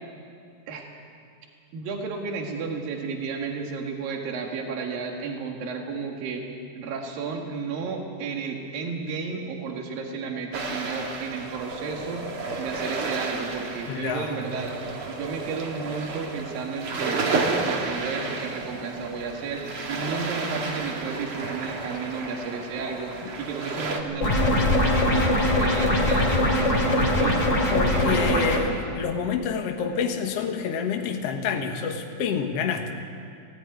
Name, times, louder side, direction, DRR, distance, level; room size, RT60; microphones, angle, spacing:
voice 1, 1.7-6.5 6.7-12.3 12.6-14.7 15.1-23.1 23.4-28.4, right 5 dB, 80° right, 1 dB, 3.6 m, -33 dB
sound 1, 10.5-24.0, right 3 dB, 45° right, 2.2 m, -32 dB
voice 2, 13.9-14.4 23.2-23.3 27.7-32.9, left 6 dB, 55° left, 3 dB, 2.1 m, -28 dB
sound 2, 24.2-28.6, left 1 dB, 20° left, 3.2 m, -21 dB
18.0 x 17.0 x 9.5 m, 2.3 s
omnidirectional pair, 4.0 m